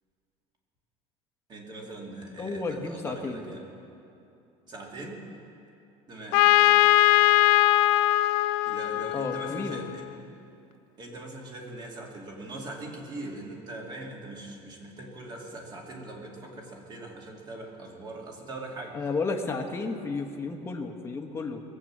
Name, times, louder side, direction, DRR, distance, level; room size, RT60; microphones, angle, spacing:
voice 1, 1.5-3.7 4.7-5.2 6.1-6.7 8.7-10.1 11.0-19.0, right 2 dB, 30° right, -1 dB, 2.6 m, -41 dB
voice 2, 2.4-3.4 9.1-9.9 18.9-21.6, left 4 dB, 15° left, 2 dB, 1.3 m, -32 dB
Trumpet, 6.3-10.1, left 17 dB, 80° left, 0.4 m, -21 dB
22.0 x 8.0 x 7.5 m, 2.7 s
cardioid pair, 145°, 14 cm